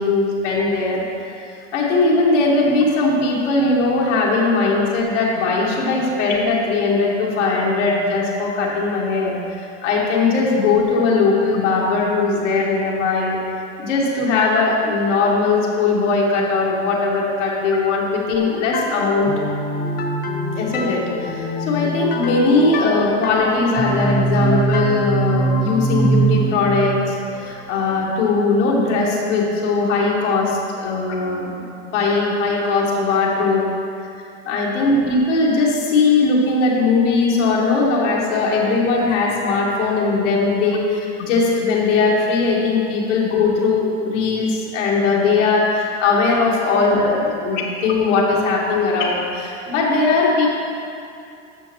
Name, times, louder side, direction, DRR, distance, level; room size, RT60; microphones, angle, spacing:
voice 1, 0.0-1.4 1.7-13.4 13.8-19.3 20.5-31.5 31.8-33.7 34.4-50.5, left 3 dB, 90° left, -4 dB, 1.6 m, -19 dB
sound 1, 18.7-28.3, right 2 dB, 25° left, 0.6 m, -23 dB
13.5 x 5.2 x 3.0 m, 2.5 s
supercardioid pair, 140°, 36 cm